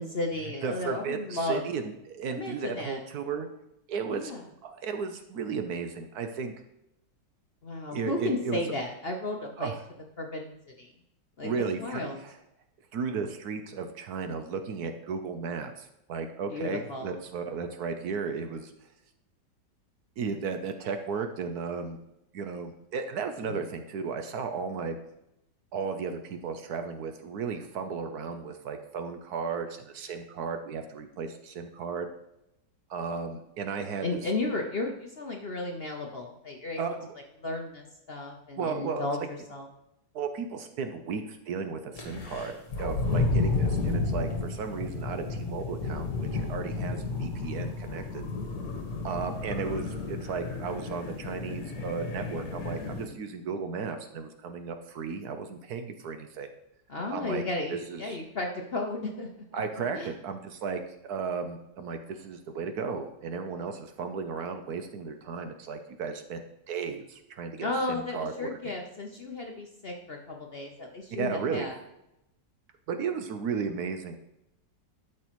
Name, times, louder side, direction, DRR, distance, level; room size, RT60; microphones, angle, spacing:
voice 1, 0.0-1.7 2.3-3.0 4.1-4.4 7.6-9.7 10.2-10.9 11.4-12.2 16.5-17.2 23.4-23.6 34.0-36.8 37.4-39.7 56.9-59.3 59.9-60.1 67.6-71.8, left 2 dB, 45° left, 2 dB, 0.8 m, -34 dB
voice 2, 0.6-3.5 3.9-4.3 4.6-6.5 7.9-8.6 9.6-9.8 11.4-12.4 12.9-18.7 20.2-22.0 22.3-25.0 25.7-32.1 32.9-34.1 36.8-37.1 38.6-39.1 40.1-48.2 49.0-56.5 57.1-57.4 57.7-58.2 59.5-66.4 66.7-68.5 71.1-71.7 72.9-74.2, right 5 dB, 65° right, 7 dB, 1.2 m, -34 dB
sound 1, 41.9-53.1, left 3 dB, 70° left, 1.9 m, -32 dB
12.0 x 6.2 x 3.0 m, 0.86 s
omnidirectional pair, 1.9 m